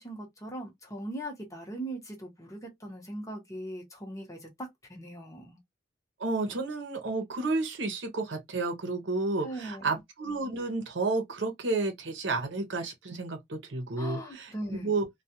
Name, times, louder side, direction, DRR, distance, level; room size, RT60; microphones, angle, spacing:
voice 1, 0.0-5.6 9.4-9.9 14.0-14.9, right 1 dB, 20° left, 0.9 m, -40 dB
voice 2, 6.2-15.1, right 3 dB, 70° right, 0.8 m, -31 dB
2.3 x 2.2 x 2.8 m
head